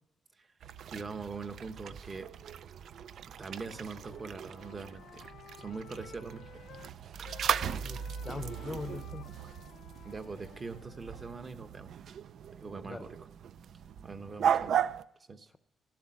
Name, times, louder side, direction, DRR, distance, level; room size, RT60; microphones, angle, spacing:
sound 1, 0.6-15.0, right 8 dB, 65° right, 0.5 m, -37 dB
voice 1, 0.9-2.3 3.4-5.2 5.6-6.5 10.0-11.9 12.6-13.3 14.0-14.8 15.3-15.5, right 4 dB, 30° right, 1.0 m, -42 dB
Wind instrument woodwind instrument, 3.4-6.9 7.2-11.4, left 10 dB, 75° left, 0.5 m, -54 dB
voice 2, 7.6-9.3 12.8-13.1, left 3 dB, 20° left, 0.7 m, -42 dB
13.5 x 12.0 x 7.5 m
cardioid pair, 145°, 0 cm